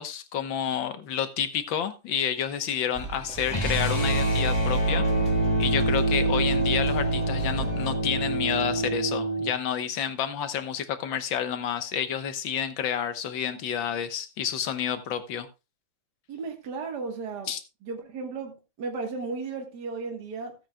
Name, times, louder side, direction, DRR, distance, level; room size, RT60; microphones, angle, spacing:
voice 1, 0.0-5.0 5.6-15.5 17.5-17.6, left 8 dB, 65° left, 1.7 m, -29 dB
sound 1, 2.9-8.0, right 3 dB, 5° left, 2.2 m, -39 dB
sound 2, 3.5-9.5, right 2 dB, 20° left, 1.6 m, -25 dB
voice 2, 16.3-17.5 17.8-20.5, right 4 dB, 50° right, 1.8 m, -35 dB
16.0 x 8.9 x 2.3 m
omnidirectional pair, 2.4 m